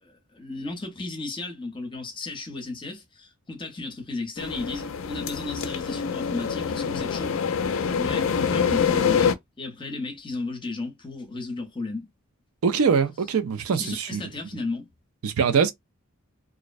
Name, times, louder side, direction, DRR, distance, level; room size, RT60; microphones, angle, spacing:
voice 1, 0.0-7.4 7.9-12.1 12.7-12.8 13.7-14.9, left 3 dB, 20° left, 0.6 m, -34 dB
sound 1, 4.4-9.3, left 6 dB, 65° left, 0.4 m, -25 dB
voice 2, 12.6-14.2 15.2-15.7, right 6 dB, 80° right, 0.4 m, -23 dB
2.4 x 2.1 x 2.4 m
head